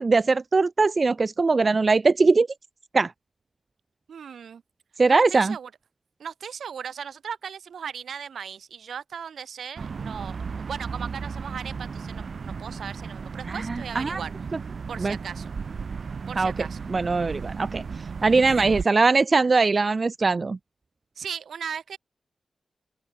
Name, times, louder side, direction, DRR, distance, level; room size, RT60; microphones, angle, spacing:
voice 1, 0.0-2.5 2.9-3.1 5.0-5.5 13.5-14.2 15.0-15.2 16.4-16.5 16.9-20.6, right 3 dB, 50° right, 1.8 m, -21 dB
voice 2, 4.1-4.6 5.1-5.7 6.2-10.4 10.6-14.3 14.9-15.5 16.3-16.8 18.5-18.7 21.2-22.0, right 7 dB, 85° right, 5.7 m, -37 dB
sound 1, 9.8-18.8, right 5 dB, 70° right, 7.4 m, -35 dB
open air
cardioid pair, 45°, 0 cm